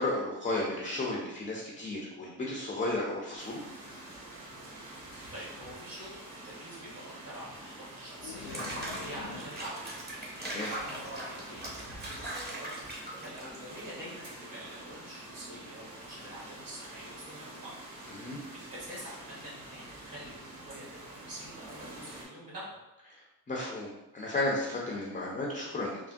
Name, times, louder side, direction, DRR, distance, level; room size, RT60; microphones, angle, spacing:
voice 1, 0.0-3.6 10.4-10.7 18.1-18.4 23.5-26.0, left 2 dB, 20° left, -3 dB, 0.4 m, -33 dB
sound 1, 3.4-22.2, right 1 dB, 65° right, 1.2 m, -47 dB
voice 2, 4.8-10.2 10.8-17.7 18.2-22.7, equal, 50° right, -6 dB, 1.5 m, -46 dB
sound 2, 8.2-9.7, left 5 dB, 80° left, 0.6 m, -44 dB
Water / Bathtub (filling or washing), 8.3-13.8, right 1 dB, 20° right, 0.8 m, -40 dB
3.4 x 2.1 x 2.6 m, 0.99 s
cardioid pair, 95°, 45 cm